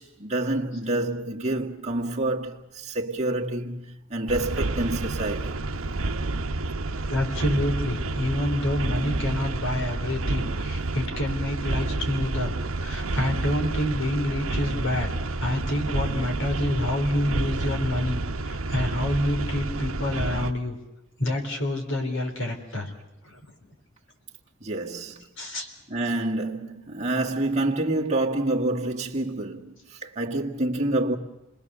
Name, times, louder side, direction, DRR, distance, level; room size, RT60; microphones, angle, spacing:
voice 1, 0.0-5.6 24.6-25.2 25.9-31.2, right 2 dB, 35° right, 1.9 m, -28 dB
sound 1, 4.3-20.5, right 2 dB, 75° right, 1.0 m, -29 dB
voice 2, 7.1-15.1 15.4-20.8 21.2-22.9 23.2-23.5 25.4-25.7, left 1 dB, 65° left, 3.8 m, -28 dB
28.5 x 20.5 x 6.9 m
head